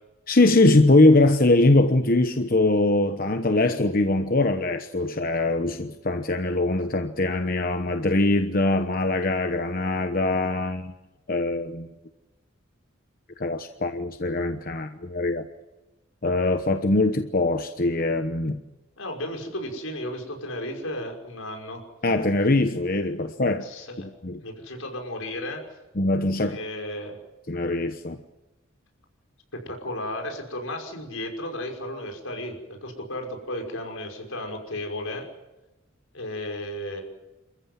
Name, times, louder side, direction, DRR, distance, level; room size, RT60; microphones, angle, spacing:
voice 1, 0.3-10.9 11.3-11.9 13.4-15.5 16.2-18.6 22.0-23.7 24.0-24.4 26.0-26.6 27.5-28.2, left 2 dB, 45° left, 1.1 m, -22 dB
voice 2, 19.0-21.8 23.6-24.1 24.4-25.6 26.4-27.2 29.5-35.3 36.1-37.0, left 1 dB, 85° left, 5.8 m, -34 dB
28.5 x 14.5 x 9.6 m
head